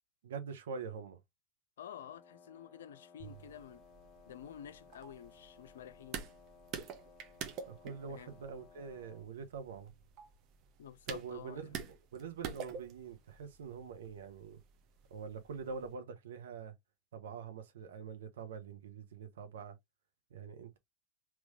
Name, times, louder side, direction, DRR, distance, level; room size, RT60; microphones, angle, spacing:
voice 1, 0.2-1.2 7.7-9.9 11.1-14.6 15.1-16.7 17.1-19.8 20.3-20.8, right 5 dB, 70° right, 0.9 m, -45 dB
voice 2, 1.8-3.8 4.3-6.2 8.1-8.4 10.8-11.8, left 9 dB, 70° left, 0.5 m, -50 dB
Wind instrument woodwind instrument, 1.9-9.3, left 5 dB, 35° left, 0.9 m, -60 dB
sound 1, 3.2-15.9, right 7 dB, 45° right, 0.9 m, -49 dB
3.6 x 3.0 x 2.6 m
figure-of-eight pair, 90°, 0 cm